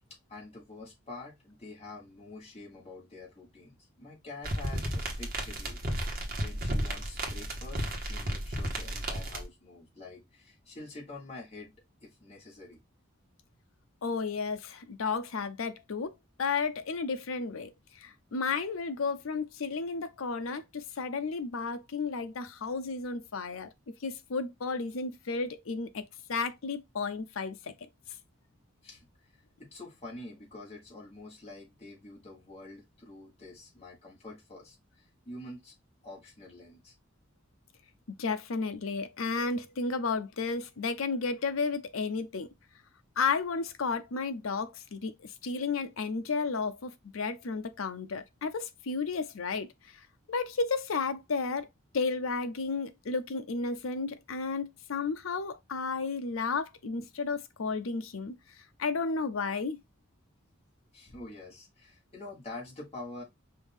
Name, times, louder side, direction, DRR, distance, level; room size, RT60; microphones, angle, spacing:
voice 1, 0.3-11.7 12.0-12.8 28.8-35.7 36.0-36.9 60.9-63.2, left 2 dB, 30° left, 1.6 m, -47 dB
sound 1, 4.4-9.4, right 1 dB, 45° right, 1.2 m, -33 dB
voice 2, 14.0-16.1 16.4-17.7 18.0-27.9 38.2-42.5 43.2-50.0 50.3-51.7 51.9-58.4 58.8-59.8, left 4 dB, 80° left, 0.6 m, -33 dB
5.3 x 2.6 x 3.5 m
head